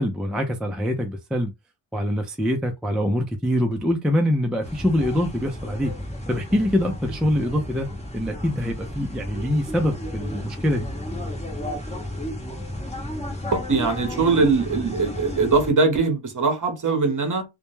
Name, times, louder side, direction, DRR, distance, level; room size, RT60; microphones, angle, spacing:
voice 1, 0.0-1.5 1.9-5.9 6.3-7.9 8.1-10.9, left 1 dB, ahead, 0.3 m, -24 dB
sound 1, 4.6-15.7, left 1 dB, 15° left, 0.9 m, -33 dB
voice 2, 13.5-17.4, right 4 dB, 40° right, 0.8 m, -21 dB
2.2 x 2.0 x 3.0 m
cardioid pair, 85°, 49 cm